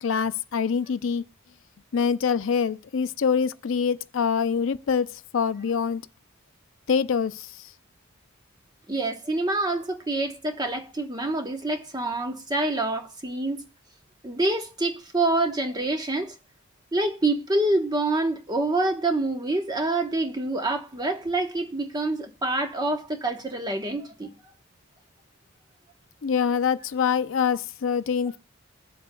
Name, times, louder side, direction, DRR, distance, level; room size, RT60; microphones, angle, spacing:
voice 1, 0.0-1.2 1.9-5.1 5.3-6.0 6.9-7.5 26.2-28.4, left 6 dB, 70° left, 0.5 m, -25 dB
voice 2, 8.9-13.7 14.2-16.3 16.9-24.3, right 2 dB, 20° right, 1.0 m, -26 dB
21.5 x 7.6 x 2.2 m
head